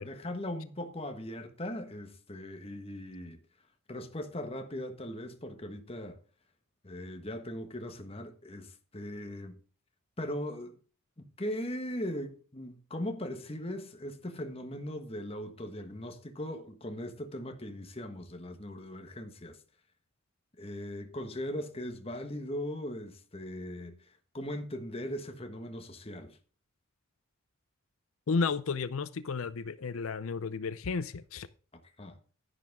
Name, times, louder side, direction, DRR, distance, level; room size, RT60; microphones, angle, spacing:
voice 1, 0.0-3.4 3.9-6.2 6.8-9.5 10.2-10.8 11.2-19.6 20.6-26.4 32.0-32.2, left 1 dB, 30° left, 1.4 m, -39 dB
voice 2, 28.3-31.5, left 4 dB, 85° left, 0.6 m, -32 dB
11.0 x 10.5 x 3.6 m
head